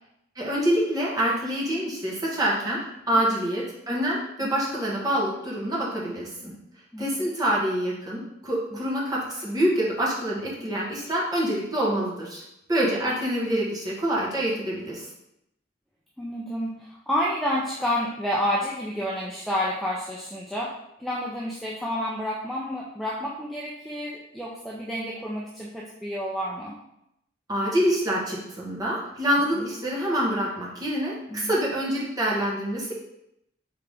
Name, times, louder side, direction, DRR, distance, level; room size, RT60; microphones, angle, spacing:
voice 1, 0.4-2.8 3.1-6.5 7.0-12.4 12.7-15.1 27.5-32.9, right 1 dB, 20° right, -5 dB, 1.0 m, -26 dB
voice 2, 6.9-7.3 8.7-8.8 12.8-12.9 16.2-26.7 29.6-29.7 31.3-31.5, equal, ahead, -5 dB, 0.4 m, -30 dB
3.8 x 3.4 x 3.4 m, 0.81 s
head